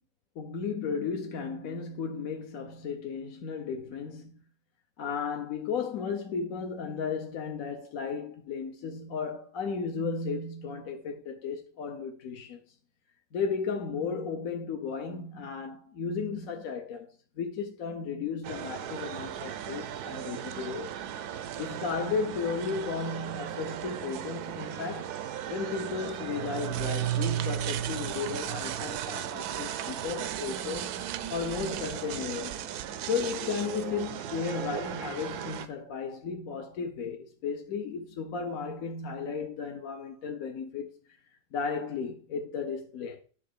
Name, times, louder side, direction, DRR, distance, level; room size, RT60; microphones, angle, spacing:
voice 1, 0.4-4.3 5.0-12.6 13.3-17.1 17.4-21.0 21.5-25.1 25.5-30.9 31.3-32.7 33.1-40.9 41.5-43.2, left 5 dB, 65° left, 1.2 m, -34 dB
sound 1, 18.4-35.7, right 9 dB, 85° right, 1.2 m, -38 dB
sound 2, 26.3-33.8, right 12 dB, 70° right, 0.9 m, -35 dB
10.5 x 3.8 x 6.7 m
omnidirectional pair, 1.6 m